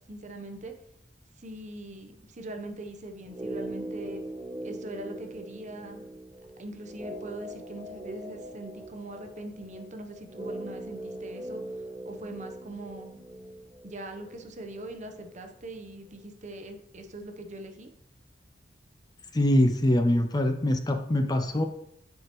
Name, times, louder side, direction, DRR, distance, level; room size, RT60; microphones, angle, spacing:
voice 1, 0.1-0.7 1.4-4.2 4.6-6.1 6.6-11.6 12.0-13.2 13.8-17.9, right 1 dB, 40° right, 5 dB, 0.8 m, -41 dB
sound 1, 3.2-15.4 15.6-15.7, right 1 dB, 20° right, 1.2 m, -41 dB
voice 2, 19.3-21.7, left 1 dB, 20° left, 7 dB, 0.4 m, -23 dB
9.1 x 4.7 x 3.0 m, 0.75 s
head